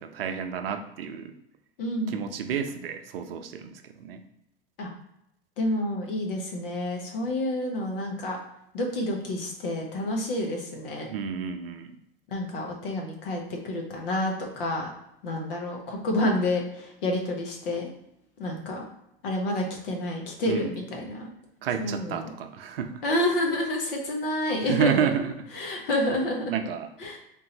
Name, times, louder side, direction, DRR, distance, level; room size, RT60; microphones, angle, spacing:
voice 1, 0.0-1.3 2.1-4.2 11.1-11.9 20.5-20.7 21.6-23.0 24.6-25.8 26.5-26.9, right 7 dB, 75° right, 8 dB, 0.5 m, -30 dB
voice 2, 1.8-2.2 4.8-4.9 5.6-8.4 8.7-11.1 12.3-14.9 15.2-17.9 18.4-18.8 19.2-21.3 21.8-22.3 23.0-25.1 25.5-26.5 27.0-27.2, left 1 dB, 65° left, 1 dB, 1.1 m, -29 dB
3.7 x 2.6 x 2.9 m, 0.82 s
hypercardioid pair, 90°, 29 cm